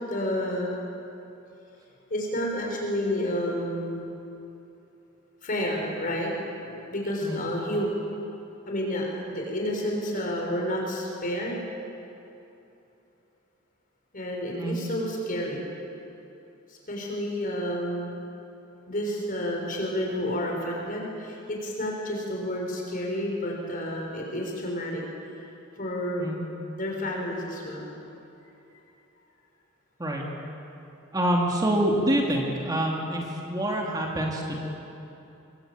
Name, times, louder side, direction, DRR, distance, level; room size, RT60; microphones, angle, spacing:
voice 1, 0.1-0.7 2.1-4.0 5.4-7.9 8.7-11.6 14.1-15.6 16.7-18.1 18.9-25.0 25.4-25.5 25.8-26.4 26.7-27.9, equal, 40° left, -1 dB, 6.4 m, -30 dB
voice 2, 31.1-33.2 33.5-34.6, right 1 dB, 20° right, -1 dB, 2.7 m, -26 dB
25.5 x 23.5 x 9.1 m, 2.9 s
head